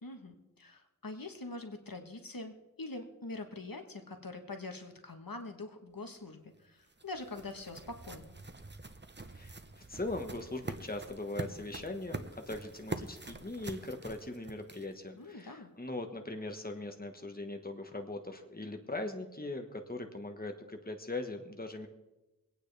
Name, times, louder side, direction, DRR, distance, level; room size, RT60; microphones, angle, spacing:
voice 1, 0.0-8.4 15.2-15.7, left 2 dB, 70° left, 6 dB, 1.3 m, -44 dB
sound 1, 6.5-15.1, right 2 dB, 30° right, 0.9 m, -45 dB
voice 2, 9.9-21.9, left 2 dB, 25° left, 5 dB, 1.4 m, -40 dB
24.0 x 9.1 x 3.4 m, 1.0 s
wide cardioid pair, 45°, 35 cm